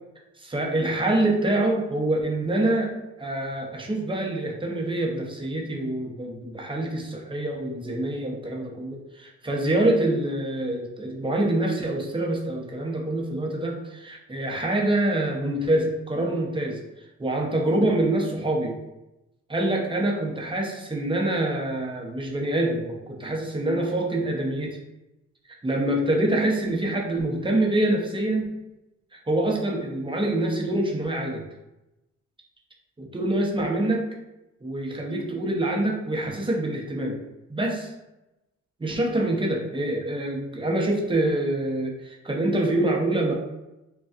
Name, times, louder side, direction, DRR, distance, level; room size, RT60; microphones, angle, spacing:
voice 1, 0.5-2.9 3.2-16.8 17.2-18.7 19.5-24.8 25.6-28.4 29.3-31.4 33.0-34.0 34.6-37.2 37.5-37.9 38.8-43.3, right 1 dB, 15° right, -1 dB, 0.8 m, -25 dB
5.1 x 2.3 x 2.5 m, 0.96 s
cardioid pair, 90°, 30 cm